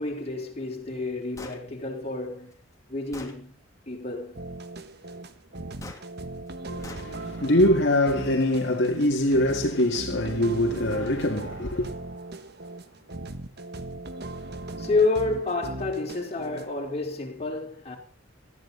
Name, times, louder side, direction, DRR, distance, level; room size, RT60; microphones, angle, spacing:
voice 1, 0.0-2.5 2.9-3.5 3.9-4.4 14.8-18.0, left 3 dB, 30° left, 4.1 m, -29 dB
Gunshot gunfire, 1.4-1.6 2.5-2.6 3.1-3.4 5.8-6.0 6.8-7.1, left 2 dB, 15° left, 2.6 m, -41 dB
sound 1, 4.3-16.7, right 2 dB, 55° right, 1.3 m, -38 dB
voice 2, 6.8-11.9, left 1 dB, 60° left, 2.2 m, -23 dB
19.5 x 14.5 x 4.1 m
head